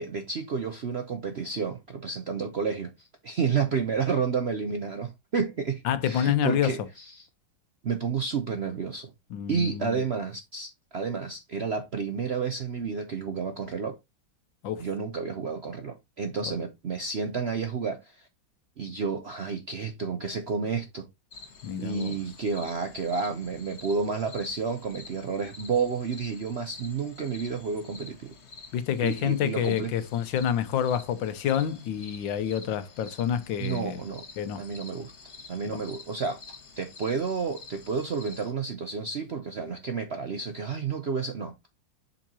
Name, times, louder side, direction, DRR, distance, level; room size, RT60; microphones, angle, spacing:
voice 1, 0.0-7.3 7.8-9.1 9.5-14.0 14.8-18.3 18.8-21.1 21.8-28.3 29.0-29.9 33.6-34.2 34.6-35.1 35.5-41.5, right 5 dB, 60° right, 0.6 m, -31 dB
voice 2, 5.8-6.8 9.3-10.0 14.6-14.8 16.5-16.6 21.6-22.2 28.7-34.0 34.4-34.6 35.7-35.8, left 9 dB, 85° left, 1.5 m, -28 dB
sound 1, 21.3-38.5, left 4 dB, 40° left, 1.4 m, -48 dB
7.3 x 5.7 x 2.8 m
omnidirectional pair, 2.0 m